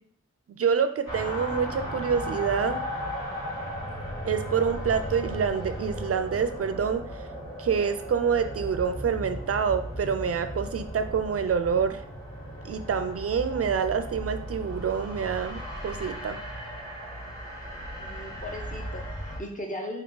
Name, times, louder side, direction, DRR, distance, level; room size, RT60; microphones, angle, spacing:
voice 1, 0.5-2.8 4.3-7.0 7.6-12.0 12.6-16.4, right 6 dB, 55° right, 9 dB, 0.4 m, -27 dB
sound 1, 1.1-19.4, equal, 80° left, 1.6 m, -36 dB
voice 2, 18.0-20.0, left 1 dB, 25° left, 2 dB, 0.7 m, -38 dB
3.5 x 2.8 x 3.8 m, 0.62 s
wide cardioid pair, 85°, 29 cm